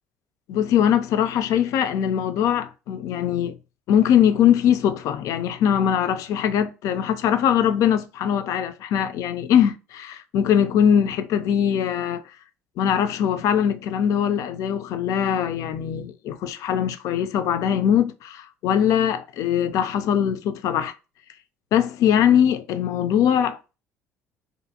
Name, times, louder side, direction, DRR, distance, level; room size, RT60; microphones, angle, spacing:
voice 1, 0.5-3.6 3.9-12.2 12.8-20.9 21.7-23.8, left 9 dB, 65° left, 0.3 m, -21 dB
2.5 x 2.4 x 2.7 m
hypercardioid pair, 65°, 6 cm